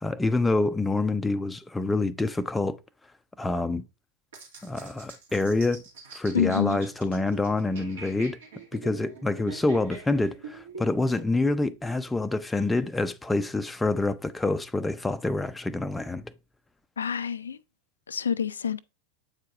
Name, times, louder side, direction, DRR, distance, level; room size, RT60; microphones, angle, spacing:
voice 1, 0.0-2.8 3.4-3.8 4.6-5.8 6.1-8.4 8.7-16.3, left 2 dB, 10° left, 0.5 m, -27 dB
sound 1, 4.3-11.3, right 4 dB, 60° right, 2.2 m, -44 dB
voice 2, 6.3-6.8 17.0-17.6 18.1-18.8, left 7 dB, 70° left, 0.4 m, -27 dB
8.2 x 4.7 x 3.5 m
figure-of-eight pair, 90°, 0 cm